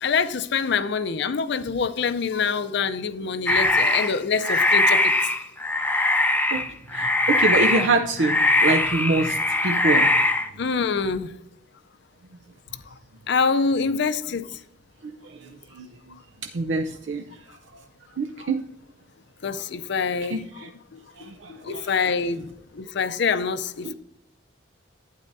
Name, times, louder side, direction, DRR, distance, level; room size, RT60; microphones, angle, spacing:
voice 1, 0.0-5.1 10.6-11.3 13.3-14.5 18.4-18.5 19.4-23.9, left 5 dB, 65° left, 0.6 m, -26 dB
sound 1, 3.5-4.2 4.4-10.5, left 2 dB, 10° left, 0.6 m, -21 dB
voice 2, 6.9-10.1 15.8-15.9 16.5-17.2 18.2-18.6 20.3-20.7 21.3-21.9 23.8-23.9, right 3 dB, 70° right, 0.6 m, -25 dB
12.0 x 9.2 x 2.7 m
head